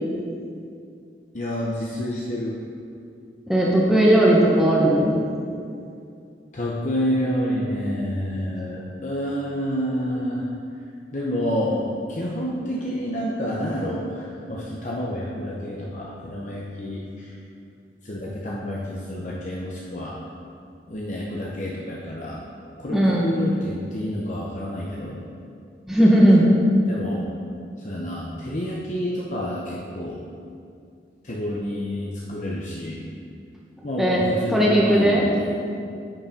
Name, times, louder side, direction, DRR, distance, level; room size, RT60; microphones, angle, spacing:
voice 1, 1.3-2.6 6.5-10.5 11.1-17.3 18.0-20.2 20.9-22.4 22.8-25.2 26.9-27.3 27.8-30.2 31.2-33.0 33.8-35.5, equal, 40° left, -4 dB, 0.7 m, -29 dB
voice 2, 3.5-5.2 22.9-23.2 25.9-26.5 34.0-34.2 34.5-35.3, right 1 dB, ahead, -5 dB, 0.9 m, -17 dB
8.7 x 5.0 x 5.2 m, 2.4 s
head